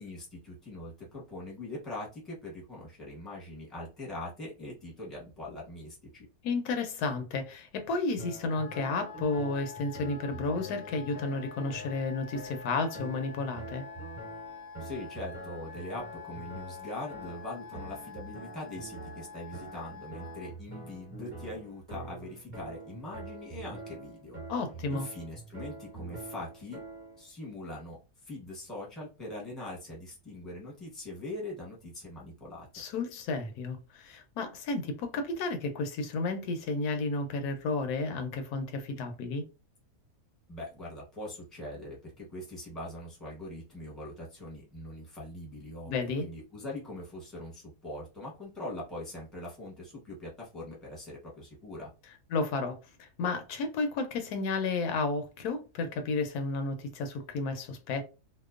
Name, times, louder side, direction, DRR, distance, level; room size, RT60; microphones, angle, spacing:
voice 1, 0.0-6.3 14.8-24.4 24.9-26.8 27.1-32.7 40.5-51.9, left 1 dB, ahead, 0.8 m, -42 dB
voice 2, 6.4-13.8 24.5-25.0 32.7-39.4 45.9-46.3 52.3-58.0, left 3 dB, 85° left, 1.1 m, -32 dB
sound 1, 8.2-27.2, right 2 dB, 25° right, 1.1 m, -45 dB
Wind instrument woodwind instrument, 8.5-20.5, left 6 dB, 70° left, 0.5 m, -47 dB
2.8 x 2.1 x 2.3 m
omnidirectional pair, 1.6 m